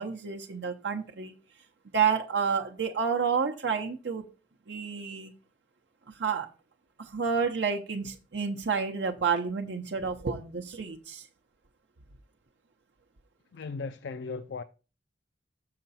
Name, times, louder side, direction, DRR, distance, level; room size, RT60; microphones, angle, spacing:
voice 1, 0.0-1.3 1.9-4.3 4.7-5.3 6.1-6.5 7.0-11.3, right 6 dB, 80° right, 0.7 m, -30 dB
voice 2, 13.5-14.6, left 4 dB, 75° left, 0.4 m, -37 dB
6.7 x 5.8 x 4.1 m
head